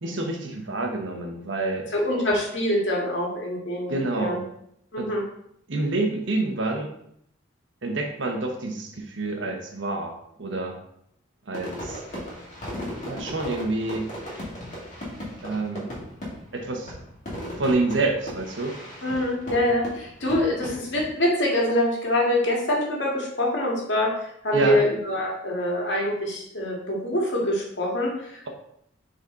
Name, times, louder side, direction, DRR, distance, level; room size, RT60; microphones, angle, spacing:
voice 1, 0.0-1.9 3.9-4.4 5.0-5.1 5.7-6.9 7.8-10.1 10.4-10.8 11.5-12.0 13.0-14.1 15.4-15.9 16.5-16.9 17.5-18.7 24.5-24.8, right 2 dB, 75° right, 3 dB, 1.1 m, -27 dB
voice 2, 1.9-4.4 4.9-5.2 19.0-28.5, left 1 dB, 70° left, -2 dB, 2.0 m, -25 dB
Fireworks, 11.5-21.1, equal, 40° left, 2.5 m, -37 dB
6.8 x 4.1 x 3.9 m, 0.73 s
head